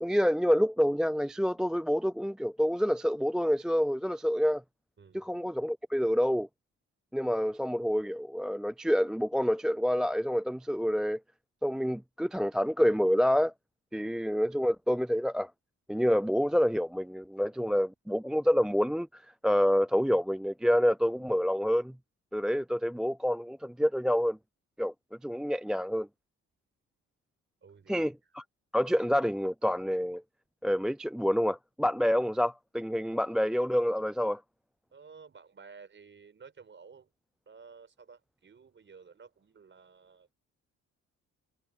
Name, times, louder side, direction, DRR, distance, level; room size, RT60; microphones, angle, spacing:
voice 1, 0.0-4.6 5.1-6.5 7.1-11.2 11.6-13.5 13.9-15.5 15.9-21.9 22.3-24.4 24.8-24.9 25.2-26.1 27.9-28.4 28.7-30.2 30.6-34.4, equal, ahead, 0.4 m, -27 dB
voice 2, 27.6-28.1 34.9-37.1 37.5-40.3, right 5 dB, 40° right, 5.8 m, -53 dB
cardioid pair, 90°, 30 cm